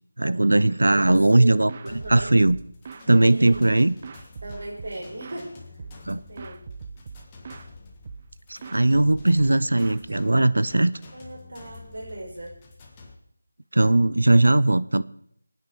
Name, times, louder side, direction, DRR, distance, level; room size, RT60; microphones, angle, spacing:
voice 1, 0.2-2.6 3.1-3.9 6.1-6.2 8.5-10.9 13.7-15.0, right 2 dB, 85° right, 17 dB, 0.6 m, -19 dB
voice 2, 0.9-1.6 1.8-2.3 3.2-3.9 4.4-5.5 6.3-6.7 11.1-12.6, right 1 dB, 65° right, -1 dB, 5.3 m, -37 dB
sound 1, 1.4-1.5 1.7-3.1 3.5-5.5 5.8-6.1 6.4-7.7 8.1-8.4 8.6-10.7, right 6 dB, 30° right, 0.5 m, -42 dB
sound 2, 1.9-13.2, left 3 dB, 20° left, 1.6 m, -48 dB
23.5 x 9.4 x 4.7 m, 0.68 s
figure-of-eight pair, 170°, 0 cm